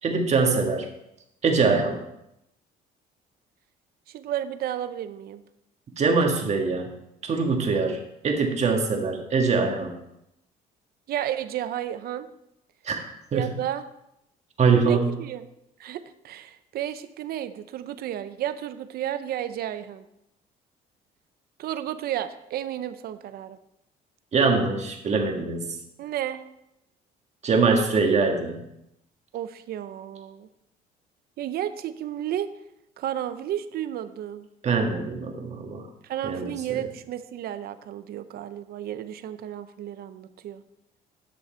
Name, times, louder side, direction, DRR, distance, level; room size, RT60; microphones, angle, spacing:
voice 1, 0.0-0.9 1.4-2.0 6.0-6.9 7.2-10.0 12.8-13.0 13.3-13.5 14.6-15.1 24.3-25.8 27.4-28.6 34.6-35.8 36.2-36.5, right 4 dB, 40° right, 3 dB, 1.6 m, -23 dB
voice 2, 4.1-5.4 11.1-12.3 13.3-13.8 14.7-15.5 15.8-20.0 21.6-23.6 26.0-26.4 29.3-30.5 31.4-32.5 33.0-34.5 36.0-40.6, right 11 dB, 65° right, 12 dB, 0.7 m, -32 dB
10.5 x 6.3 x 4.4 m, 0.84 s
cardioid pair, 110°, 17 cm